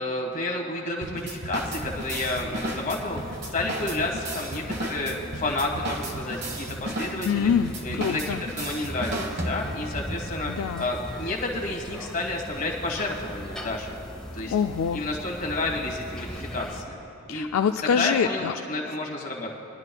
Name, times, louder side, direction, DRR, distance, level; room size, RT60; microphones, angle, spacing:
voice 1, 0.0-3.2 3.5-7.5 7.8-13.9 14.3-14.5 14.9-17.0 17.3-17.5 18.0-19.5, left 2 dB, 40° left, 0 dB, 1.6 m, -30 dB
sound 1, 1.0-9.9, right 1 dB, 55° right, 1.3 m, -34 dB
sound 2, 1.5-16.8, equal, 5° left, 0.9 m, -39 dB
voice 2, 7.2-8.4 10.5-10.9 14.5-15.0 17.3-18.5, left 7 dB, 75° left, 6 dB, 0.3 m, -25 dB
Wind instrument woodwind instrument, 7.3-13.1, right 1 dB, 70° right, 2.1 m, -53 dB
23.0 x 11.5 x 2.3 m, 2.8 s
head